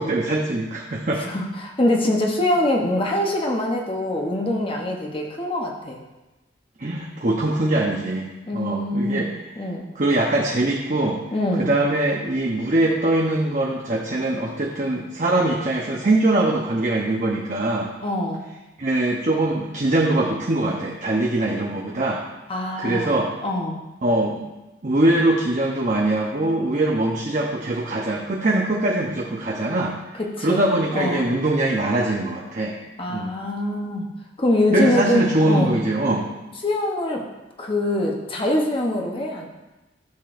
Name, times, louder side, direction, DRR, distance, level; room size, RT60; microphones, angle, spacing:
voice 1, 0.0-1.3 6.8-9.3 10.0-11.2 11.6-17.9 18.8-22.2 22.8-23.3 24.0-24.5 24.8-29.9 30.4-32.8 33.1-33.4 34.7-36.2, right 2 dB, 40° right, -2 dB, 0.7 m, -22 dB
voice 2, 1.2-6.0 8.5-9.3 9.6-9.9 11.3-11.7 18.0-18.4 22.5-23.1 23.4-23.8 30.1-31.3 33.0-34.1 34.4-35.8 36.6-37.3 37.6-39.5, left 1 dB, 30° left, 0 dB, 0.8 m, -24 dB
12.0 x 6.7 x 2.5 m, 1.1 s
head